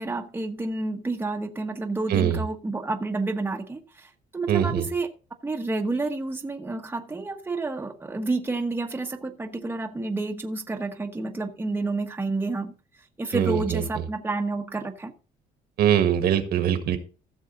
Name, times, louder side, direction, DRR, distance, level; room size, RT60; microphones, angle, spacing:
voice 1, 0.0-5.1 5.4-12.7 13.2-15.1, right 3 dB, 10° right, 3 dB, 1.2 m, -29 dB
voice 2, 2.1-2.4 4.5-4.8 13.3-13.8 15.8-17.0, right 10 dB, 65° right, 8 dB, 1.7 m, -22 dB
15.0 x 6.4 x 3.9 m, 0.37 s
cardioid pair, 110°, 17 cm